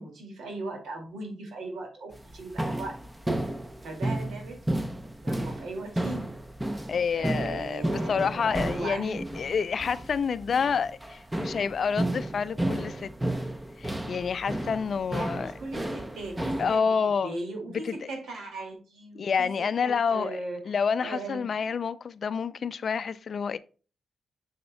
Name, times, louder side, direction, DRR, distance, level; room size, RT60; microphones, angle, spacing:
voice 1, 0.0-3.0 3.8-4.9 5.2-6.4 7.2-9.3 9.7-10.0 15.1-16.9 17.2-20.8 21.0-21.8, right 2 dB, 75° right, 2.2 m, -38 dB
sound 1, 2.1-16.8, right 1 dB, 10° right, 0.6 m, -32 dB
voice 2, 6.9-13.1 13.8-15.5 16.6-17.3 17.8-18.1 19.2-20.4 20.7-23.6, left 6 dB, 50° left, 0.4 m, -28 dB
6.8 x 6.5 x 2.2 m
cardioid pair, 120°, 0 cm